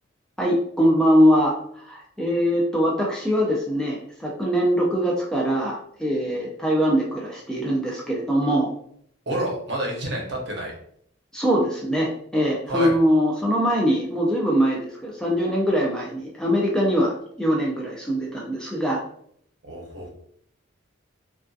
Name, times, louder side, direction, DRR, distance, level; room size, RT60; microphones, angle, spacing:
voice 1, 0.4-8.7 11.3-19.0, equal, 5° left, -3 dB, 0.3 m, -22 dB
voice 2, 9.3-10.7 12.7-12.9 19.6-20.1, right 1 dB, 60° right, -1 dB, 0.7 m, -28 dB
2.6 x 2.3 x 2.3 m, 0.66 s
head